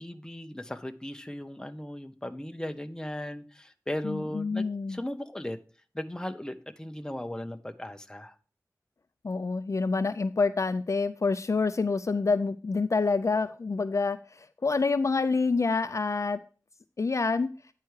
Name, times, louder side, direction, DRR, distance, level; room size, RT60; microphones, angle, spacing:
voice 1, 0.0-5.6 5.9-8.3, left 1 dB, 10° left, 0.7 m, -37 dB
voice 2, 4.0-5.0 9.2-16.4 17.0-17.5, left 4 dB, 50° left, 0.4 m, -27 dB
9.5 x 4.7 x 4.6 m
wide cardioid pair, 75°, 6 cm